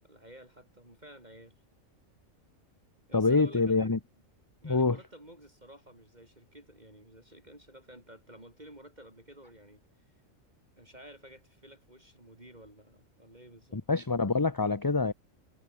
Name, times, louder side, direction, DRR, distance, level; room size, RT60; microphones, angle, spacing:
voice 1, 0.0-1.5 3.1-4.0 4.6-10.1 10.8-13.8, right 1 dB, 30° right, 6.0 m, -52 dB
voice 2, 3.1-4.0 4.6-5.0 13.7-15.1, left 3 dB, 20° left, 0.7 m, -26 dB
omnidirectional pair, 1.4 m